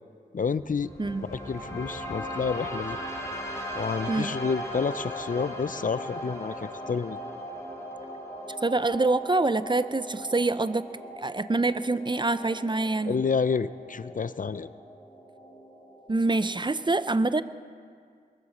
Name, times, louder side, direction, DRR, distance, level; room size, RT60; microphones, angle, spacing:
voice 1, 0.3-0.9 1.3-3.0 3.7-7.2 13.1-14.7, left 5 dB, 55° left, 15 dB, 0.5 m, -29 dB
sound 1, 0.6-16.6, equal, 20° left, 4.2 m, -39 dB
voice 2, 8.6-10.8 11.2-13.2 16.1-17.4, right 2 dB, 30° right, 14 dB, 0.5 m, -25 dB
22.0 x 7.8 x 7.2 m, 2.1 s
cardioid pair, 45°, 16 cm